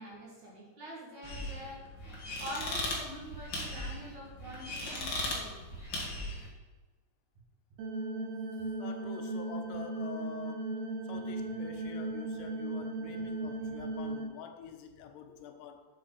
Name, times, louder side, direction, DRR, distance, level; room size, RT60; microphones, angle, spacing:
voice 1, 0.0-1.9 2.4-5.6, equal, 50° right, -3 dB, 2.7 m, -45 dB
sound 1, 1.2-6.5, left 1 dB, 45° left, 1.4 m, -38 dB
sound 2, 7.8-14.3, right 2 dB, 70° right, 2.6 m, -37 dB
voice 2, 8.8-10.7 11.0-15.9, left 7 dB, 80° left, 6 dB, 2.8 m, -47 dB
7.9 x 7.6 x 5.6 m, 1.2 s
omnidirectional pair, 5.0 m